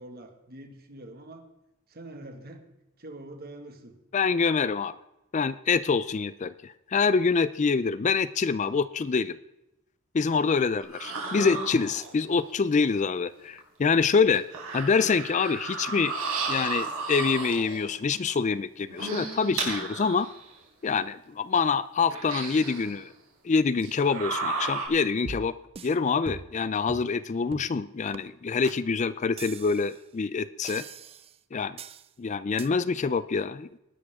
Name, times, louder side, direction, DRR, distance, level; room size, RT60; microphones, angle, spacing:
voice 1, 0.0-1.4 1.9-2.7 3.0-4.0, right 1 dB, 45° right, 5 dB, 1.8 m, -44 dB
voice 2, 4.1-4.9 5.3-9.3 10.1-14.4 14.7-16.1 16.5-20.3 20.8-23.1 23.4-25.5 25.8-30.8 31.5-31.8 32.2-33.7, left 5 dB, 35° left, 16 dB, 0.4 m, -26 dB
sound 1, 10.8-12.3 13.6-13.7 14.3-17.8 18.8-20.5 21.0-21.1 22.1-23.0 23.8-24.9, right 4 dB, 85° right, 4.2 m, -33 dB
sound 2, 25.3-26.0 26.3-26.6 26.9-27.1 27.5-27.8 28.1-28.2 28.6-28.8 29.4-30.0 30.6-31.4 31.8-32.1 32.6-32.7, right 4 dB, 25° right, 0.5 m, -41 dB
20.0 x 11.0 x 3.6 m, 0.89 s
head